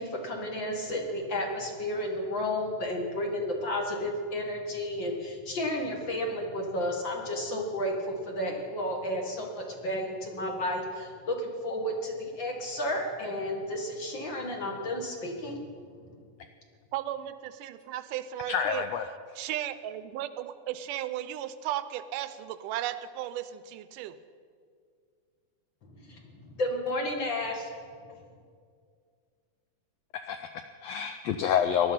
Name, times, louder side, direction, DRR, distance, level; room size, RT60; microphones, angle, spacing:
voice 1, 0.0-15.6 16.0-16.1 25.9-27.7, left 1 dB, 45° left, 1 dB, 2.1 m, -32 dB
voice 2, 16.9-18.8 19.4-24.2, right 12 dB, 90° right, 13 dB, 2.3 m, -35 dB
voice 3, 18.5-19.1 30.3-31.9, left 8 dB, 85° left, 7 dB, 1.4 m, -28 dB
18.5 x 12.0 x 5.7 m, 2.1 s
omnidirectional pair, 3.6 m